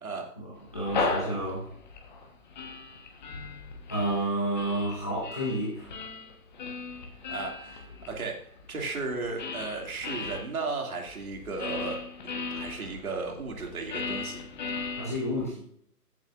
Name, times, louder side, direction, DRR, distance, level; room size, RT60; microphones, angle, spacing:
voice 1, 0.4-1.7 3.9-5.9 15.0-15.6, right 1 dB, 10° left, -8 dB, 0.7 m, -30 dB
sound 1, 0.6-10.4 11.0-15.5, left 4 dB, 30° left, 1.3 m, -37 dB
voice 2, 7.3-12.0 12.5-14.4, right 3 dB, 60° right, 1 dB, 2.7 m, -35 dB
14.5 x 7.9 x 2.6 m, 0.66 s
hypercardioid pair, 160°, 48 cm